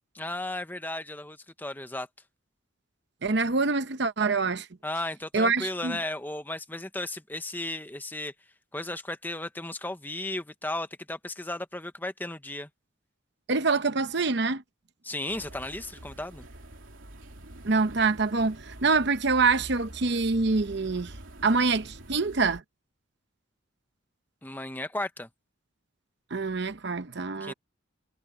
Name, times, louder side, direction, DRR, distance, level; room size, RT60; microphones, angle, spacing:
voice 1, 0.1-2.1 4.8-8.3 8.7-12.7 15.0-16.5 24.4-25.3 27.4-27.5, left 1 dB, 10° left, 0.9 m, -35 dB
voice 2, 3.2-4.7 5.3-6.0 13.5-14.6 17.6-21.1 21.4-22.6 26.3-27.5, right 4 dB, 55° right, 0.8 m, -25 dB
sound 1, 15.3-22.6, right 1 dB, 75° right, 3.2 m, -46 dB
head